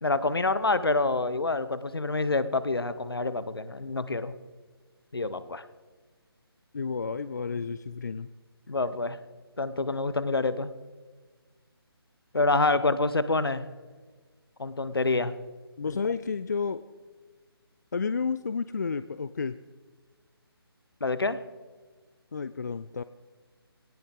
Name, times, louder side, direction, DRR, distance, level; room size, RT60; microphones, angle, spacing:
voice 1, 0.0-4.3 5.1-5.6 8.7-9.2 9.6-10.7 12.3-13.6 14.6-15.3 15.9-16.0 21.0-21.4, left 3 dB, 65° left, 14 dB, 1.1 m, -27 dB
voice 2, 6.7-8.3 15.8-16.8 17.9-19.6 22.3-23.0, left 5 dB, 45° left, 14 dB, 0.4 m, -31 dB
18.0 x 18.0 x 3.9 m, 1.4 s
figure-of-eight pair, 150°, 13 cm